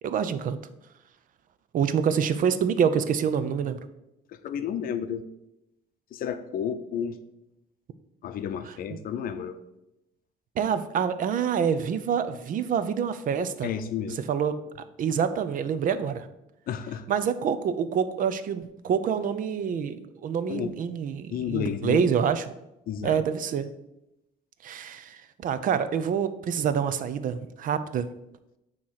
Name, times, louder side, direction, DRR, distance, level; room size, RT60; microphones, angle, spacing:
voice 1, 0.0-0.6 1.7-3.8 8.6-8.8 10.6-13.7 14.1-14.5 15.0-16.3 17.1-22.5 23.0-23.7 24.6-28.1, right 7 dB, 55° right, 12 dB, 0.6 m, -26 dB
voice 2, 4.4-5.2 6.1-7.2 8.2-9.6 13.6-14.2 16.7-17.0 20.5-20.7 21.3-22.0 22.9-23.2, left 8 dB, 60° left, 11 dB, 0.6 m, -31 dB
8.8 x 3.0 x 5.7 m, 0.88 s
cardioid pair, 110°, 17 cm